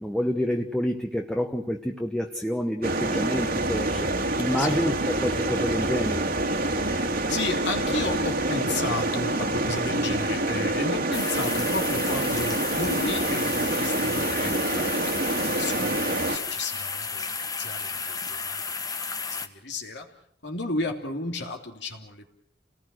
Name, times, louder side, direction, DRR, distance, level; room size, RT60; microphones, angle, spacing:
voice 1, 0.0-4.1 4.4-6.2, equal, 5° left, 3 dB, 1.2 m, -28 dB
sound 1, 2.8-16.4, right 2 dB, 55° right, 2.3 m, -26 dB
voice 2, 6.7-18.6 19.3-20.1 20.4-22.3, left 2 dB, 70° left, 2 dB, 3.3 m, -33 dB
sound 2, 11.1-19.5, left 5 dB, 20° left, 1.4 m, -32 dB
29.5 x 19.0 x 6.4 m, 0.66 s
head